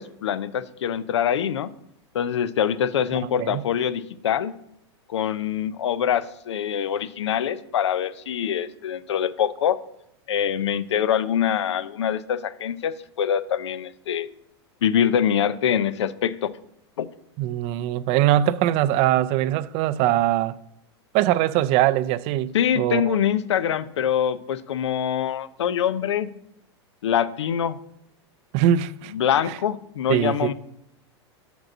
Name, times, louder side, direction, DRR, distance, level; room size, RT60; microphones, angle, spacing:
voice 1, 0.0-1.7 2.1-4.6 5.1-9.8 10.3-14.3 14.8-16.5 17.0-17.1 22.5-26.3 27.0-27.8 29.1-30.5, left 9 dB, 85° left, 0.5 m, -24 dB
voice 2, 17.4-20.5 21.1-23.2 28.5-29.1 29.5-29.6 30.1-30.5, right 12 dB, 45° right, 0.4 m, -22 dB
6.2 x 5.1 x 6.1 m
hypercardioid pair, 110°, 14 cm